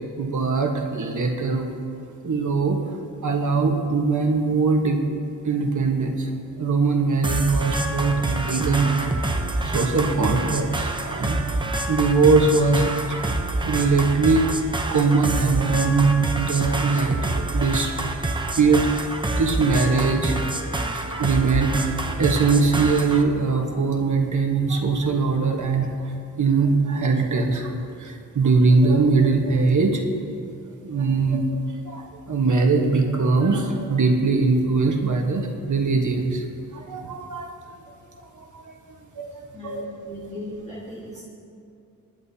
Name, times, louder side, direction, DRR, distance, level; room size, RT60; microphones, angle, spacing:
voice 1, 0.2-1.7 2.2-5.0 5.4-6.3 6.6-9.3 9.6-11.4 11.9-13.2 13.7-14.6 14.9-18.0 18.3-19.1 19.3-20.4 20.9-30.0 30.3-30.4 30.8-36.5 36.7-37.7 38.2-38.7 39.1-39.9, right 4 dB, 60° right, 2 dB, 1.3 m, -22 dB
sound 1, 7.2-23.2, right 2 dB, 15° right, 0.7 m, -27 dB
voice 2, 39.5-41.2, left 1 dB, 20° left, -7 dB, 1.6 m, -37 dB
26.0 x 10.5 x 2.8 m, 2.4 s
wide cardioid pair, 160°, 34 cm